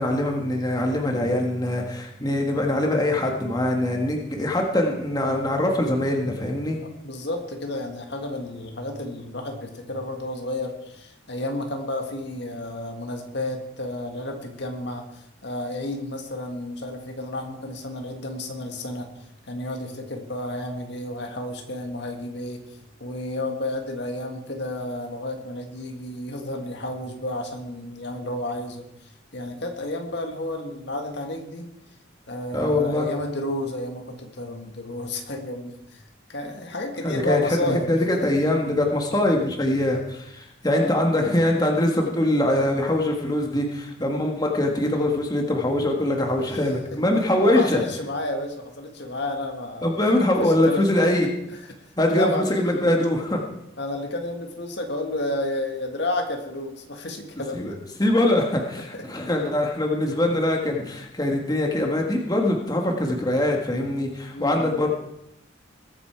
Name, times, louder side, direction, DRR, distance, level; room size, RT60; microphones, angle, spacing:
voice 1, 0.0-6.8 32.5-33.1 37.0-47.8 49.8-51.3 52.0-53.4 57.5-57.7 58.0-64.9, left 1 dB, 20° left, 1 dB, 1.6 m, -23 dB
voice 2, 6.8-19.1 19.5-31.7 32.3-36.0 36.3-38.3 40.7-41.0 46.4-46.5 46.9-47.0 47.4-49.9 50.4-51.3 51.6-52.9 53.8-57.7 58.7-59.1 64.3-64.8, left 1 dB, 60° left, 4 dB, 1.8 m, -31 dB
21.0 x 8.5 x 4.6 m, 0.83 s
head